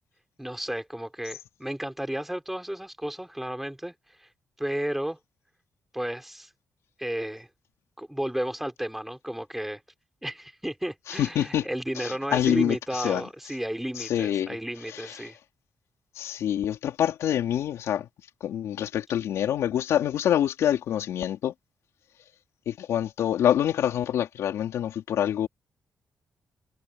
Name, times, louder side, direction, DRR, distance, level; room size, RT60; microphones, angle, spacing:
voice 1, 0.4-3.9 4.2-4.3 4.6-5.2 5.9-6.5 7.0-7.5 8.0-9.8 10.2-15.4, right 1 dB, 5° right, 3.9 m, -33 dB
voice 2, 11.1-11.7 12.0-13.2 14.0-14.6 14.9-15.2 16.2-18.1 18.4-21.5 22.7-25.5, left 10 dB, 90° left, 3.7 m, -26 dB
cardioid pair, 130°, 5 cm